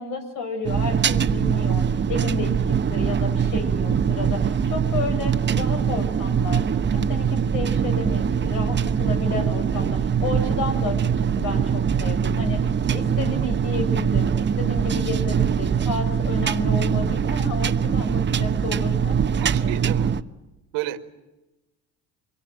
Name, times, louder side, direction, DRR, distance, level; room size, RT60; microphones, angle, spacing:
voice 1, 0.0-6.6 6.9-19.2 19.6-19.7, left 3 dB, 75° left, 6 dB, 7.4 m, -31 dB
sound 1, 0.6-20.2, right 7 dB, 35° right, 1.0 m, -22 dB
voice 2, 19.3-20.1 20.7-21.0, right 14 dB, 85° right, 9 dB, 2.1 m, -31 dB
25.5 x 23.5 x 9.1 m, 1.0 s
supercardioid pair, 95°, 33 cm